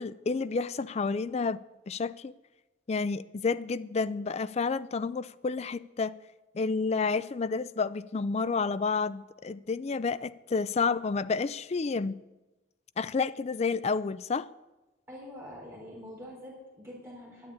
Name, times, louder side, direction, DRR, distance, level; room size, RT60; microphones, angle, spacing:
voice 1, 0.0-1.6 1.9-2.3 2.9-6.1 6.5-12.2 13.0-14.5, left 4 dB, 35° left, 0.4 m, -30 dB
voice 2, 15.1-17.5, equal, 15° right, 4.0 m, -45 dB
10.5 x 8.5 x 9.7 m
head